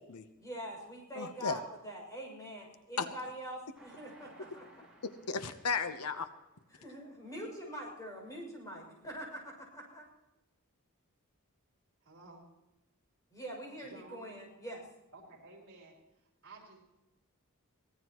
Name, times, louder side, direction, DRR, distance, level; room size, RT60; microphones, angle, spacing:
voice 1, 0.4-4.7 6.7-10.0 13.3-14.8, equal, 15° left, -1 dB, 6.6 m, -44 dB
voice 2, 1.1-1.6 3.0-3.1 5.0-6.3, left 5 dB, 90° left, 10 dB, 1.0 m, -35 dB
Train, 3.7-7.2 7.7-7.8 8.1-8.2, right 2 dB, 5° right, 4.5 m, -61 dB
voice 3, 12.0-12.4 13.9-14.3 15.1-15.9 16.4-16.8, right 3 dB, 50° right, -2 dB, 5.3 m, -53 dB
23.5 x 17.5 x 3.1 m, 0.96 s
head